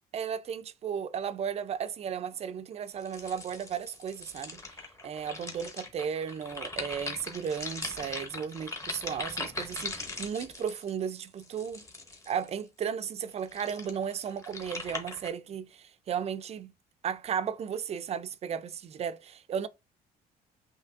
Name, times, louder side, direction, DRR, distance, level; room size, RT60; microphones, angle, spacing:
voice 1, 0.1-4.6 5.0-11.8 12.3-16.7 17.0-19.7, right 7 dB, 40° right, 0.4 m, -35 dB
sound 1, 3.0-12.6 13.3-15.3, left 2 dB, 20° left, 0.9 m, -40 dB
5.7 x 2.7 x 2.4 m
cardioid pair, 110°, 17 cm